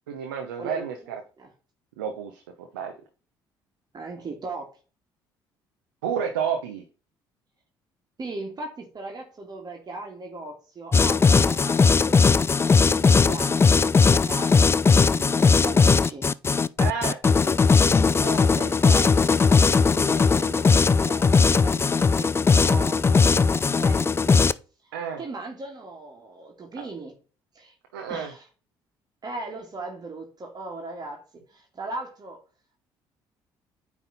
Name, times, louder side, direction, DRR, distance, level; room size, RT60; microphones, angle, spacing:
voice 1, 0.1-1.2 2.0-2.9 6.0-6.8 16.8-17.2 24.9-25.2 26.8-26.9 27.9-28.3, right 7 dB, 90° right, 0.9 m, -30 dB
voice 2, 0.6-0.9 1.4-1.5 3.9-4.7 8.2-16.3 18.2-24.6 24.8-27.1 27.5-27.7 28.1-28.5 29.2-31.2 31.5-32.4, right 3 dB, 40° right, 2.0 m, -38 dB
sound 1, 10.9-24.5, left 4 dB, 25° left, 0.4 m, -19 dB
9.2 x 3.6 x 4.1 m
hypercardioid pair, 55°, 11 cm